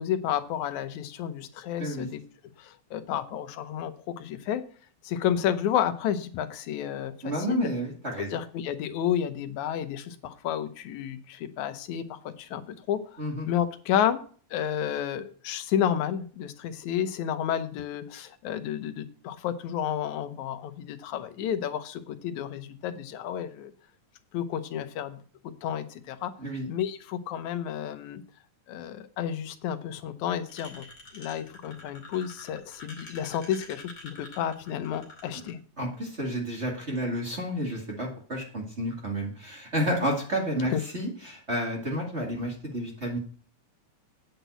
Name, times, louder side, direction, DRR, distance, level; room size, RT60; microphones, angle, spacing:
voice 1, 0.0-2.2 2.9-4.6 5.1-7.7 8.3-12.6 12.9-13.0 13.5-14.2 14.5-23.7 24.3-25.2 25.6-26.3 26.7-28.2 28.7-30.9 31.1-35.6 40.7-40.8, left 9 dB, 75° left, 10 dB, 2.2 m, -31 dB
voice 2, 7.2-8.4 13.2-13.5 26.4-26.7 35.8-43.2, equal, 25° right, -2 dB, 2.1 m, -31 dB
sound 1, 30.5-35.5, left 2 dB, 40° left, 3.3 m, -47 dB
9.2 x 6.0 x 8.0 m, 0.43 s
omnidirectional pair, 3.5 m